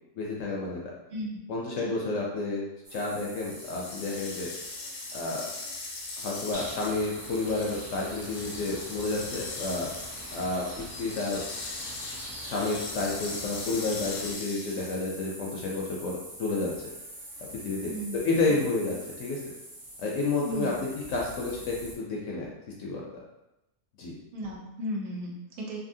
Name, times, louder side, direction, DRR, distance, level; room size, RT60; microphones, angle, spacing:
voice 1, 0.1-0.9 1.5-4.5 5.1-5.4 6.2-9.9 10.3-11.4 12.4-16.7 17.6-19.4 20.0-22.5 22.8-23.0 24.0-24.1, left 3 dB, 65° left, -3 dB, 0.8 m, -30 dB
voice 2, 1.1-1.4 1.8-1.9 17.8-18.2 18.5-18.6 20.4-20.9 24.3-25.8, equal, 70° right, -2 dB, 1.1 m, -35 dB
sound 1, 2.8-21.9, right 1 dB, 45° right, 0.9 m, -45 dB
sound 2, 3.5-15.1, left 3 dB, 90° left, 1.2 m, -40 dB
sound 3, 6.5-14.3, equal, 10° right, 0.5 m, -44 dB
2.7 x 2.6 x 2.6 m, 0.90 s
omnidirectional pair, 1.6 m